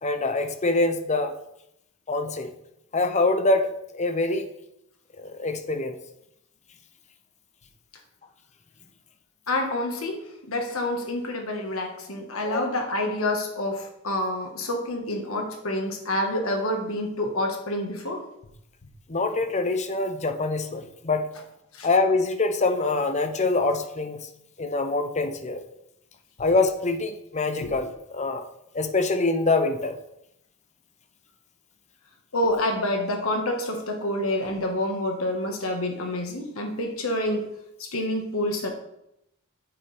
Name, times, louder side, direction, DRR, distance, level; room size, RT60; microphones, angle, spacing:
voice 1, 0.0-1.3 2.1-2.5 2.9-4.5 5.2-6.0 12.4-12.6 19.1-21.3 21.8-24.3 24.6-25.6 26.4-28.4 28.7-30.0, left 3 dB, 35° left, 7 dB, 0.9 m, -25 dB
voice 2, 9.5-18.2 21.7-21.9 27.6-27.7 32.3-37.5 37.8-38.7, left 1 dB, 80° left, 3 dB, 1.6 m, -28 dB
8.6 x 8.5 x 3.5 m, 0.80 s
head